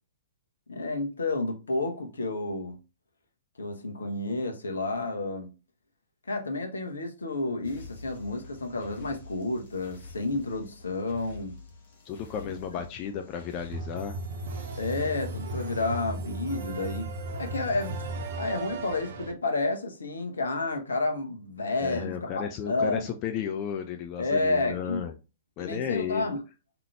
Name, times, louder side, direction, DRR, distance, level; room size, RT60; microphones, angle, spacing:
voice 1, 0.7-2.8 3.6-5.5 6.3-11.6 12.5-12.6 14.8-17.1 17.4-18.0 18.4-23.2 24.2-25.1 25.6-26.4, left 2 dB, 70° left, 0.9 m, -30 dB
sound 1, 7.6-16.0, left 2 dB, 45° left, 1.1 m, -48 dB
voice 2, 12.1-14.2 21.8-25.1 25.6-26.2, left 8 dB, 30° left, 0.4 m, -33 dB
sound 2, 13.7-19.3, right 2 dB, 50° right, 0.6 m, -36 dB
3.7 x 2.9 x 3.3 m
figure-of-eight pair, 110°, 0 cm